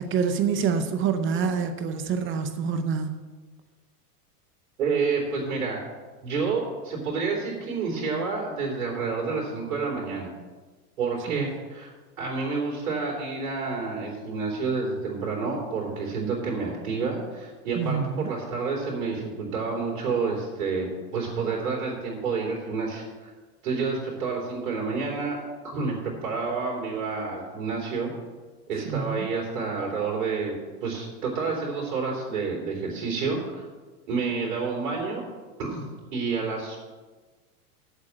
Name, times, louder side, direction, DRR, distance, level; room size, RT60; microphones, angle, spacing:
voice 1, 0.0-3.2 11.3-11.5 17.7-18.3 28.8-29.3, right 6 dB, 25° right, 9 dB, 0.7 m, -27 dB
voice 2, 4.8-5.8 6.2-10.3 11.0-11.9 12.2-23.3 23.6-25.4 25.6-28.1 28.7-30.5 30.8-33.6 34.1-35.2 35.6-35.9 36.1-36.8, right 4 dB, 70° right, -2 dB, 3.9 m, -29 dB
8.1 x 7.5 x 7.5 m, 1.3 s
hypercardioid pair, 120°, 48 cm